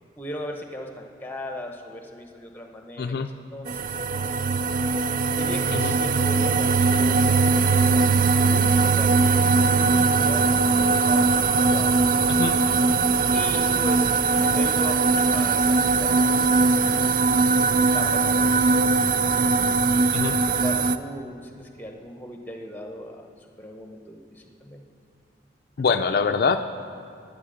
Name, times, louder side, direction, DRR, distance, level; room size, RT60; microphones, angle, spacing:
voice 1, 0.2-3.2 3.5-4.6 5.4-8.1 8.4-12.0 13.3-14.1 14.4-17.0 17.6-19.7 20.4-24.8, equal, 10° left, 3 dB, 0.8 m, -38 dB
voice 2, 3.0-3.3 5.7-5.9 12.3-12.6 20.1-20.4 25.8-26.6, left 5 dB, 55° left, 6 dB, 0.4 m, -24 dB
sound 1, 3.7-21.0, right 4 dB, 50° right, 0.3 m, -20 dB
11.5 x 9.2 x 5.1 m, 2.5 s
head